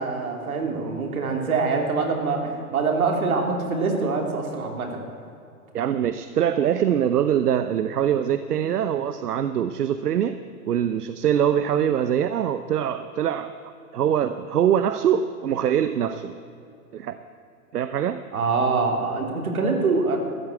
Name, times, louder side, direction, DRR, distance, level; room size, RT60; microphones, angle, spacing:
voice 1, 0.0-5.0 18.3-20.2, right 4 dB, 65° right, 2 dB, 3.2 m, -24 dB
voice 2, 5.7-10.4 10.7-13.5 13.9-16.3 16.9-17.2 17.7-18.2, right 9 dB, 85° right, 11 dB, 0.8 m, -23 dB
13.5 x 11.0 x 8.2 m, 2.6 s
hypercardioid pair, 165°, 45 cm